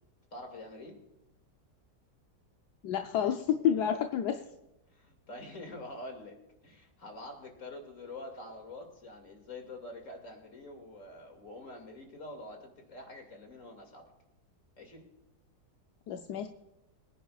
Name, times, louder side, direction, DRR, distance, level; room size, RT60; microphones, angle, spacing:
voice 1, 0.3-1.0 4.9-14.1 14.8-15.1, left 2 dB, 55° left, 3 dB, 2.7 m, -46 dB
voice 2, 2.8-4.4 16.1-16.5, left 9 dB, 85° left, 5 dB, 1.3 m, -29 dB
23.5 x 10.0 x 2.4 m, 0.93 s
omnidirectional pair, 1.7 m